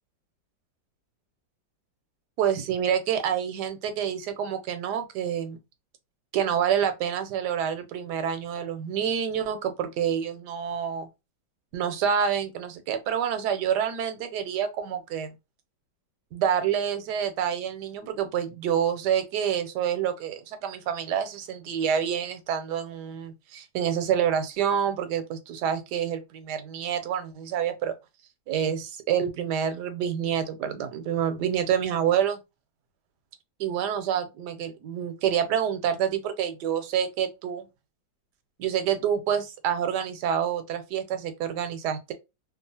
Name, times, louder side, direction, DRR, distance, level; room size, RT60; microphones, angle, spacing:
voice 1, 2.4-5.6 6.3-11.1 11.7-15.3 16.3-27.9 28.5-32.4 33.6-37.7 38.6-42.1, right 8 dB, 75° right, 1.1 m, -27 dB
3.0 x 2.4 x 2.7 m
omnidirectional pair, 1.9 m